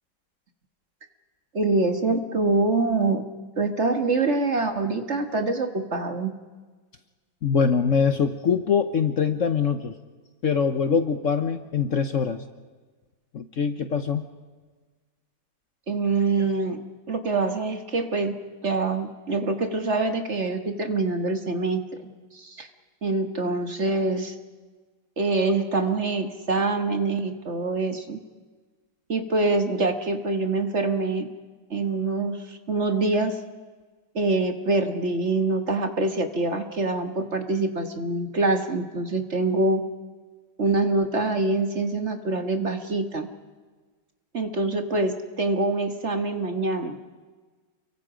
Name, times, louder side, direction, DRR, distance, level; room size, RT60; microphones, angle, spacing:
voice 1, 1.5-3.2 3.6-6.3 15.9-18.4 18.6-22.7 23.0-24.3 25.2-28.2 29.1-31.3 31.7-33.4 34.1-39.8 40.6-43.3 44.3-47.0, right 3 dB, 40° right, 7 dB, 1.7 m, -25 dB
voice 2, 7.4-9.9 10.4-12.4 13.3-14.2, left 6 dB, 50° left, 9 dB, 1.1 m, -23 dB
29.0 x 23.5 x 5.1 m, 1.4 s
omnidirectional pair, 1.9 m